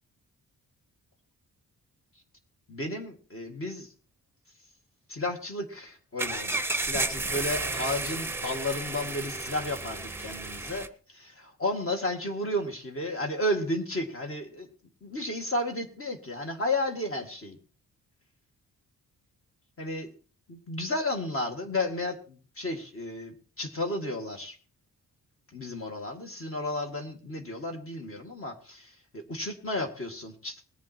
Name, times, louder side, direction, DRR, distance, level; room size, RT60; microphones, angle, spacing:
voice 1, 2.7-3.9 5.1-14.7 15.0-17.6 19.8-20.1 20.5-24.6 25.5-30.6, left 1 dB, 40° left, 3 dB, 2.1 m, -33 dB
sound 1, 6.2-10.9, right 2 dB, 5° right, 0.8 m, -32 dB
20.5 x 7.4 x 4.4 m, 0.37 s
wide cardioid pair, 145°, 35 cm